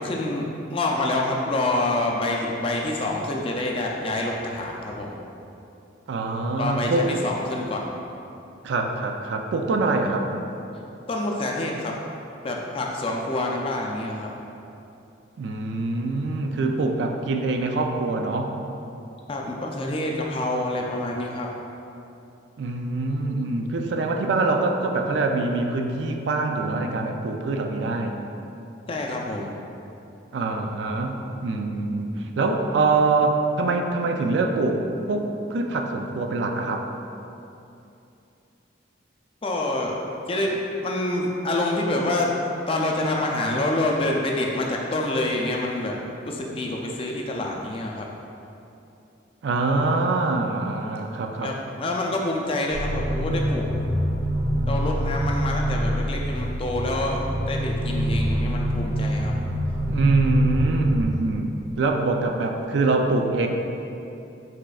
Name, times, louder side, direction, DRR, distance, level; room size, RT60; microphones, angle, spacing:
voice 1, 0.0-5.2 6.6-7.9 11.1-11.9 12.4-14.3 19.3-21.5 28.9-29.6 39.4-40.0 40.3-40.6 40.8-42.3 42.7-46.0 46.2-48.1 51.4-53.7 54.7-57.2 57.5-59.4, left 2 dB, 30° left, -1 dB, 0.3 m, -27 dB
voice 2, 6.1-7.1 8.6-10.3 15.4-18.5 22.6-28.1 30.3-31.2 31.4-36.8 49.4-51.5 59.9-61.5 61.8-63.5, right 3 dB, 65° right, 3 dB, 0.3 m, -24 dB
sound 1, 52.7-61.0, equal, 30° right, 0.7 m, -25 dB
5.0 x 4.2 x 2.3 m, 2.8 s
head